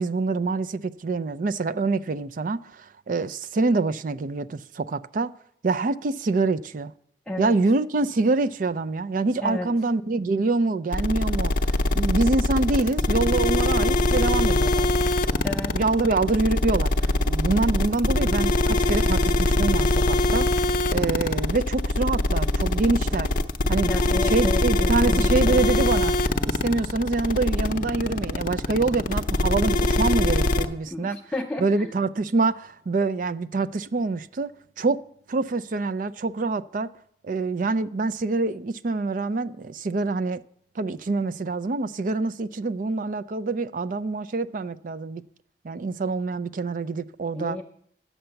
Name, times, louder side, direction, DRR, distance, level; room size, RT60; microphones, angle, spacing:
voice 1, 0.0-5.3 5.6-6.9 7.4-11.6 11.9-14.9 15.7-20.5 20.9-23.3 23.7-26.2 26.4-31.2 31.6-34.5 34.8-35.0 35.3-36.9 37.2-40.4 40.8-45.2 45.6-47.6, right 3 dB, 50° right, 0.4 m, -25 dB
voice 2, 7.3-7.6 9.4-9.7 15.4-15.8 23.8-25.6 30.9-31.9 47.3-47.6, left 2 dB, 5° left, 0.6 m, -32 dB
sound 1, 10.9-30.7, left 2 dB, 50° left, 0.6 m, -22 dB
10.0 x 7.7 x 6.9 m
head